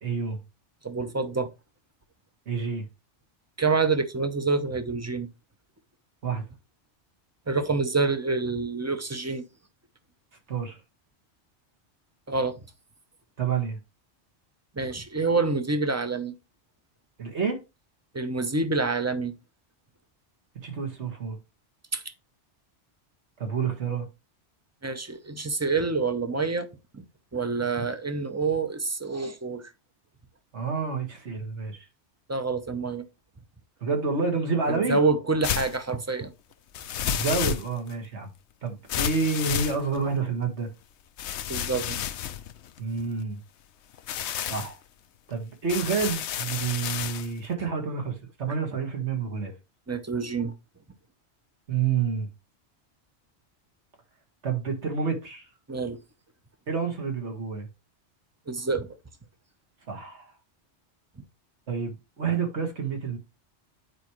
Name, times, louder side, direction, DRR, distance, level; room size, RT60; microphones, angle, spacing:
voice 1, 0.0-0.4 2.5-2.9 6.2-6.4 10.5-10.8 13.4-13.8 17.2-17.6 20.6-21.4 23.4-24.1 30.5-31.9 33.8-35.0 37.1-38.3 38.6-40.7 42.8-43.4 44.5-44.8 45.3-49.5 51.7-52.3 54.4-55.5 56.7-57.7 59.9-60.3 61.7-63.2, right 5 dB, 75° right, 1.9 m, -29 dB
voice 2, 0.8-1.5 3.6-5.3 7.5-9.5 12.3-12.6 14.8-16.3 18.1-19.3 21.9-22.0 24.8-27.0 27.3-29.7 32.3-33.0 34.7-36.3 41.5-42.0 49.9-50.5 55.7-56.0 58.5-58.9, right 4 dB, 20° right, 0.6 m, -27 dB
sound 1, 35.4-35.8 36.7-37.9 38.9-40.2 41.2-43.2 43.9-44.7 45.7-47.3, left 10 dB, 75° left, 0.9 m, -31 dB
9.1 x 4.8 x 3.0 m
omnidirectional pair, 1.2 m